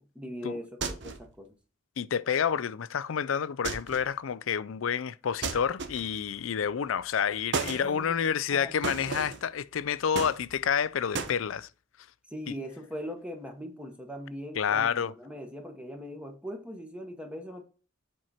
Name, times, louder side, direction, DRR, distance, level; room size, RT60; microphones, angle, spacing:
voice 1, 0.0-1.5 7.7-8.2 8.5-9.1 12.3-17.6, equal, 5° right, 1.1 m, -40 dB
sound 1, 0.8-1.3 3.6-4.1 5.4-6.2 7.5-7.9 8.8-9.5 10.1-10.8 11.1-11.4, right 4 dB, 60° right, 0.9 m, -34 dB
voice 2, 2.0-11.7 12.5-12.6 14.6-15.1, left 7 dB, 75° left, 0.4 m, -29 dB
7.6 x 4.5 x 4.2 m
head